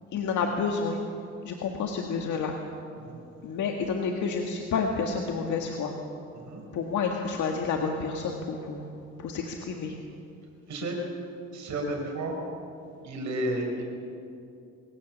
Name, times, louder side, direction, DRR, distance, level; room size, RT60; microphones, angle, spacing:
voice 1, 0.1-1.0 1.5-2.5 3.4-5.9 6.7-8.9 9.2-9.9, left 5 dB, 75° left, 2 dB, 1.8 m, -29 dB
voice 2, 11.5-12.4 13.0-13.8, right 1 dB, 70° right, 1 dB, 5.2 m, -32 dB
23.5 x 17.0 x 7.4 m, 2.6 s
cardioid pair, 90°, 30 cm